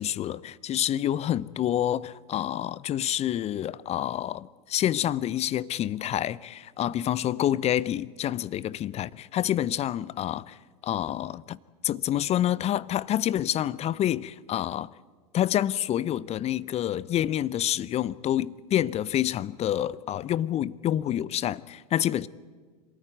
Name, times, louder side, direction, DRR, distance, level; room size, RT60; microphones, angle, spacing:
voice 1, 0.0-10.6 10.8-11.6 11.8-14.9 15.3-22.3, left 11 dB, 35° left, 0.6 m, -28 dB
26.5 x 14.0 x 9.3 m
figure-of-eight pair, 80°, 20 cm